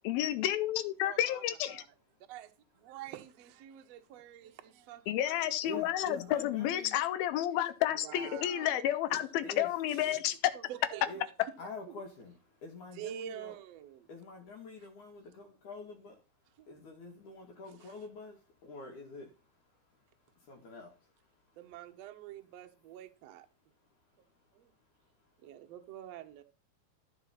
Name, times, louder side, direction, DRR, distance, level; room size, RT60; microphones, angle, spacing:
voice 1, 0.0-1.8 5.1-10.4, left 12 dB, 80° left, 2.6 m, -31 dB
voice 2, 1.0-1.9 2.3-5.8 8.0-8.8 9.1-9.3 10.0-10.2 10.5-11.5 11.8-11.9 13.0-14.1 16.6-16.7 21.6-23.5 24.5-24.7 25.4-26.4, right 10 dB, 65° right, 1.7 m, -47 dB
voice 3, 3.7-4.1 5.7-7.0 9.4-9.7 11.1-11.2 11.6-13.6 14.0-21.6 23.8-25.6, left 3 dB, 60° left, 3.0 m, -48 dB
13.5 x 4.9 x 5.7 m
omnidirectional pair, 4.3 m